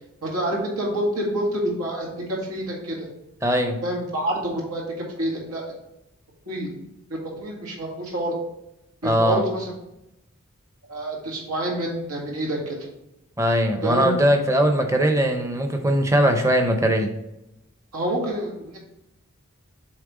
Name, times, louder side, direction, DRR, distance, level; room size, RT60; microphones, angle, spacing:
voice 1, 0.2-3.1 3.8-4.9 5.2-5.6 6.5-6.8 7.1-8.4 9.0-9.7 10.9-12.8 13.8-14.1 17.9-18.8, right 1 dB, 85° right, -2 dB, 2.0 m, -27 dB
voice 2, 3.4-3.8 9.0-9.4 13.4-17.1, equal, 15° right, 4 dB, 0.7 m, -20 dB
7.4 x 3.4 x 4.8 m, 0.88 s
head